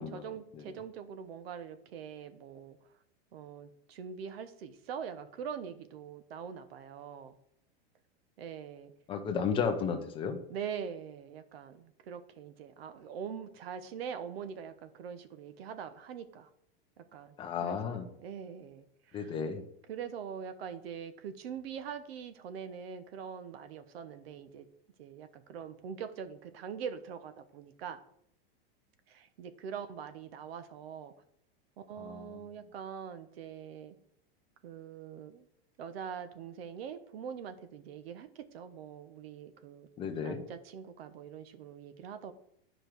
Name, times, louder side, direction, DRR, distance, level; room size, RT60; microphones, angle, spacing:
voice 1, 0.0-2.8 3.3-7.4 8.4-8.9 10.5-16.5 17.0-17.4 17.6-19.4 19.9-24.7 25.0-28.0 29.1-31.1 31.8-34.0 34.6-35.5 35.8-39.9 40.2-42.3, right 7 dB, 70° right, 10 dB, 1.0 m, -43 dB
voice 2, 9.1-10.4 17.4-18.1 19.1-19.6 32.0-32.4 40.0-40.4, left 6 dB, 15° left, 5 dB, 0.7 m, -33 dB
11.0 x 5.1 x 4.6 m, 0.71 s
supercardioid pair, 165°, 31 cm